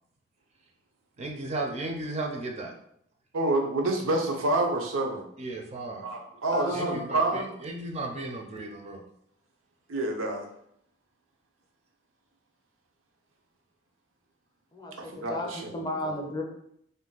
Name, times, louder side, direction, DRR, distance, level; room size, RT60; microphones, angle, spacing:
voice 1, 1.2-2.7 5.4-6.0 6.8-9.0, right 2 dB, 35° right, 2 dB, 0.4 m, -35 dB
voice 2, 3.3-5.2 6.0-7.5 9.9-10.5 15.0-15.9, right 2 dB, 85° right, 2 dB, 0.6 m, -28 dB
voice 3, 6.5-7.3 14.7-16.4, left 1 dB, 20° left, 1 dB, 0.5 m, -34 dB
2.6 x 2.1 x 3.8 m, 0.72 s
head